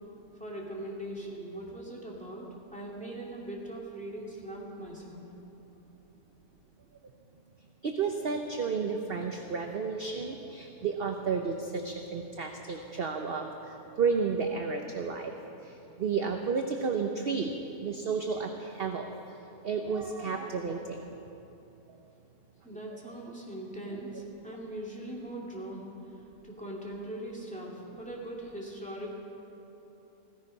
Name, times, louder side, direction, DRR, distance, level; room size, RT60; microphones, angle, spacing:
voice 1, 0.4-5.2 22.6-25.9 26.4-29.1, right 1 dB, 5° left, -4 dB, 2.3 m, -40 dB
voice 2, 7.8-15.3 15.6-19.1 19.6-21.1 23.3-23.4 24.0-24.1, right 5 dB, 50° right, 4 dB, 0.8 m, -32 dB
16.0 x 14.5 x 5.4 m, 3.0 s
omnidirectional pair, 1.7 m